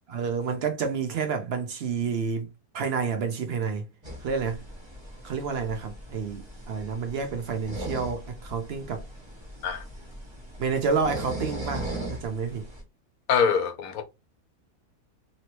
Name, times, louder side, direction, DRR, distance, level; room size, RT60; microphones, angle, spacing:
voice 1, 0.1-2.5 2.7-3.8 4.2-4.6 5.2-9.0 10.6-12.7, right 5 dB, 60° right, 0.6 m, -29 dB
sound 1, 4.0-12.8, right 1 dB, 20° right, 1.0 m, -39 dB
voice 2, 13.3-14.0, left 6 dB, 70° left, 1.1 m, -24 dB
2.9 x 2.9 x 2.9 m
omnidirectional pair, 1.6 m